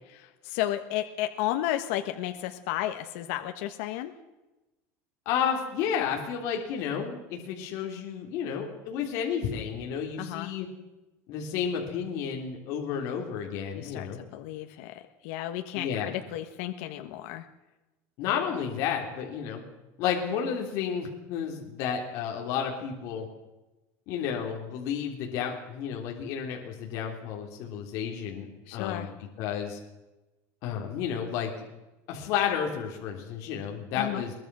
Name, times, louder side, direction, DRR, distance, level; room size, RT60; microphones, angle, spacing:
voice 1, 0.1-4.1 10.2-10.5 13.7-17.4 28.7-29.1 33.9-34.2, left 13 dB, 65° left, 7 dB, 1.4 m, -33 dB
voice 2, 5.3-10.7 11.3-14.2 15.7-16.1 18.2-19.6 20.0-23.3 24.1-29.1 29.4-29.8 30.6-31.5 32.1-34.3, left 8 dB, 45° left, 1 dB, 3.5 m, -31 dB
22.5 x 20.5 x 6.2 m, 1.1 s
cardioid pair, 180°, 7 cm